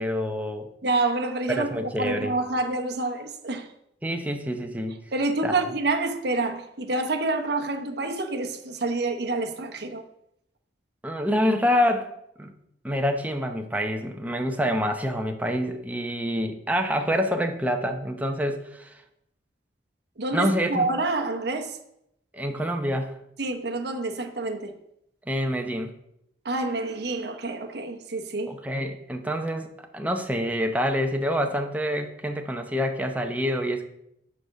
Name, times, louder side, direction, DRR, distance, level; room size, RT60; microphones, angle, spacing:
voice 1, 0.0-0.7 1.6-2.3 4.0-5.0 5.4-5.5 11.0-12.1 12.4-12.6 12.8-19.0 20.3-20.8 22.3-23.1 25.3-25.9 28.5-29.7 29.9-33.8, equal, 10° right, 0.8 m, -26 dB
voice 2, 0.8-3.7 5.1-10.0 20.2-21.8 23.4-24.7 26.4-28.5, right 2 dB, 60° right, 0.8 m, -28 dB
6.9 x 5.0 x 6.4 m
head